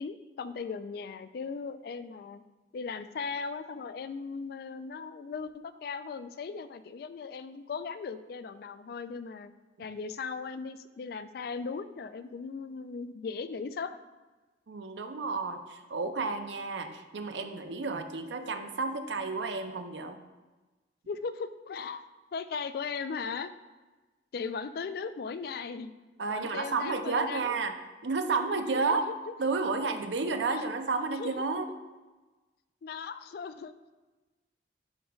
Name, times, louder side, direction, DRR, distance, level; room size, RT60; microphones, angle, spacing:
voice 1, 0.0-2.4 2.7-9.5 9.8-14.0 21.1-22.1 22.3-23.5 24.3-25.9 26.3-27.6 28.7-29.1 30.5-30.6 31.2-31.3 32.8-33.7, left 5 dB, 55° left, 12 dB, 0.3 m, -38 dB
voice 2, 14.7-20.2 26.2-27.7 28.0-29.0 29.4-31.7, right 4 dB, 85° right, 7 dB, 0.6 m, -31 dB
10.5 x 5.0 x 2.4 m, 1.2 s
head